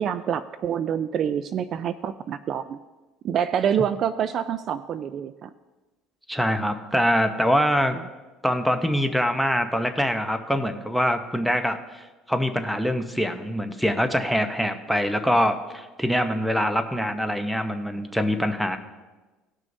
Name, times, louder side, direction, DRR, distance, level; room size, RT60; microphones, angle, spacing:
voice 1, 0.0-2.8 3.2-5.5, right 8 dB, 45° right, 13 dB, 0.3 m, -26 dB
voice 2, 6.3-8.0 8.4-18.8, equal, ahead, 8 dB, 0.8 m, -24 dB
18.5 x 6.2 x 2.7 m, 1.2 s
cardioid pair, 125°, 0 cm